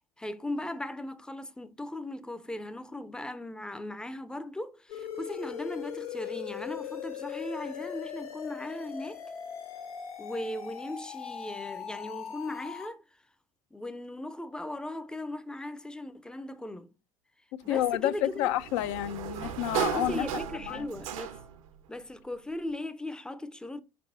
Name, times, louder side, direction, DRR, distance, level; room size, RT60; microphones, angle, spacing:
voice 1, 0.2-9.3 10.2-13.0 13.7-16.9 17.6-18.6 19.9-21.4 21.9-23.8, left 1 dB, 5° left, 0.6 m, -38 dB
sound 1, 4.9-12.9, left 9 dB, 75° left, 1.7 m, -40 dB
voice 2, 17.7-20.3 20.7-20.9, left 14 dB, 55° left, 0.5 m, -29 dB
Sliding door, 17.7-21.7, right 10 dB, 65° right, 0.8 m, -35 dB
5.3 x 4.3 x 5.5 m
figure-of-eight pair, 65°, 19 cm